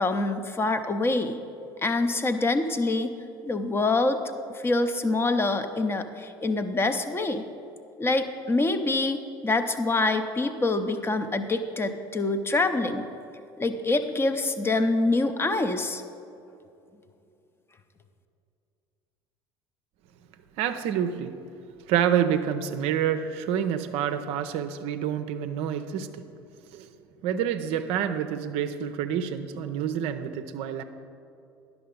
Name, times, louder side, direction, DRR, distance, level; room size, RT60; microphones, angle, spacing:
voice 1, 0.0-1.4 1.8-3.2 3.4-4.2 4.5-7.4 8.0-13.1 13.6-16.0, left 2 dB, 20° left, 9 dB, 0.6 m, -25 dB
voice 2, 20.6-21.3 21.9-26.1 26.7-26.9 27.2-30.8, right 9 dB, 50° right, 9 dB, 0.5 m, -27 dB
11.0 x 6.1 x 5.1 m, 2.6 s
figure-of-eight pair, 65°, 13 cm